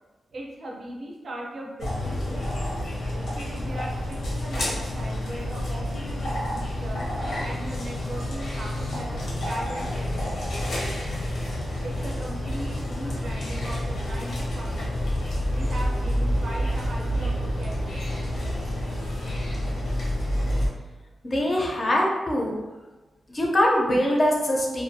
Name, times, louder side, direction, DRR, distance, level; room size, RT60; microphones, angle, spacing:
voice 1, 0.3-2.6 3.1-7.0 7.4-10.7 11.8-14.8 15.5-18.0, right 1 dB, 55° right, -2 dB, 0.5 m, -39 dB
sound 1, 1.8-20.7, equal, 85° left, 0.8 m, -28 dB
voice 2, 21.3-22.6 23.3-24.8, left 1 dB, 30° left, -1 dB, 0.5 m, -23 dB
2.5 x 2.3 x 2.6 m, 1.1 s
wide cardioid pair, 125°, 0 cm